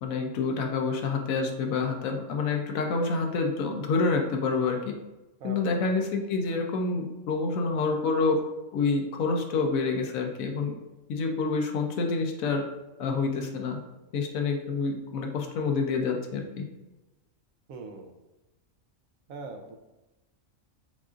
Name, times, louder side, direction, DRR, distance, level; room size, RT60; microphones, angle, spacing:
voice 1, 0.0-4.8 5.4-8.4 8.7-10.7 11.1-12.6 13.0-13.8 14.1-16.6, left 4 dB, 85° left, 2 dB, 1.0 m, -27 dB
voice 2, 5.4-6.0 17.7-18.2 19.3-19.8, right 3 dB, 85° right, 4 dB, 1.1 m, -41 dB
7.2 x 2.5 x 2.4 m, 1.1 s
omnidirectional pair, 1.4 m